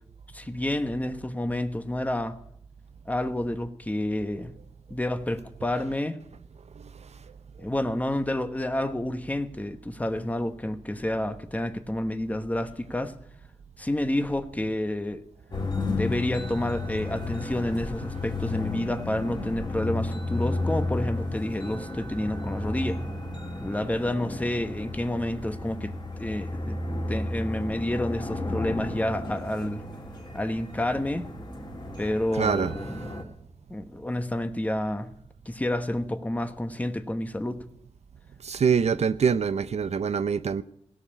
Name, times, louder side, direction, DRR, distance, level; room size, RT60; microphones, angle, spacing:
voice 1, 0.3-2.4 3.1-4.5 4.9-6.2 7.6-13.2 13.8-15.2 15.8-23.0 23.6-26.8 27.1-29.8 30.3-31.3 32.0-33.0 33.7-35.1 35.5-37.6, left 1 dB, 15° left, 1.0 m, -29 dB
sound 1, 15.5-33.2, left 2 dB, 40° left, 2.6 m, -33 dB
voice 2, 32.3-32.7 38.4-40.6, right 6 dB, 65° right, 0.5 m, -24 dB
17.0 x 6.8 x 9.9 m
wide cardioid pair, 90°, 12 cm